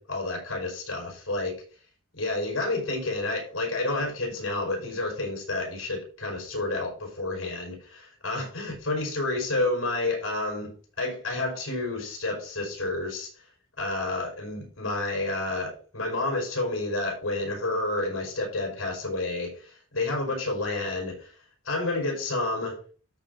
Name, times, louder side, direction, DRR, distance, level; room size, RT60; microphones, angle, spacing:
voice 1, 0.0-1.6 2.1-13.3 13.8-21.3 21.6-22.8, left 2 dB, 65° left, 0 dB, 4.8 m, -30 dB
13.5 x 4.6 x 3.9 m, 0.40 s
head